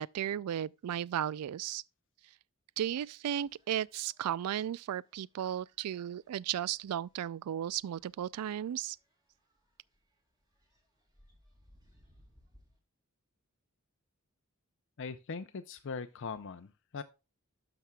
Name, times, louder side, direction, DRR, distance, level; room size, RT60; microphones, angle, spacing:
voice 1, 0.0-1.8 2.8-9.0, right 10 dB, 90° right, 0.3 m, -35 dB
sound 1, 3.3-12.8, equal, 20° right, 2.3 m, -68 dB
voice 2, 15.0-17.0, left 5 dB, 55° left, 0.5 m, -41 dB
12.5 x 5.9 x 2.3 m
head